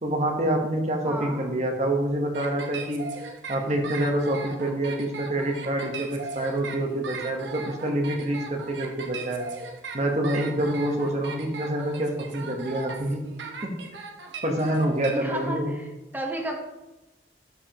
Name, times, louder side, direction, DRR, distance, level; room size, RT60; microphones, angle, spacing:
voice 1, 0.0-3.0 3.5-9.5 9.9-13.2 13.6-13.7 14.4-15.7, right 1 dB, 40° right, 3 dB, 1.1 m, -27 dB
voice 2, 1.0-1.5 15.1-16.6, right 1 dB, 10° right, 1 dB, 1.1 m, -33 dB
sound 1, 2.3-15.1, right 4 dB, 80° right, 1.0 m, -38 dB
12.0 x 4.9 x 2.9 m, 1.0 s
head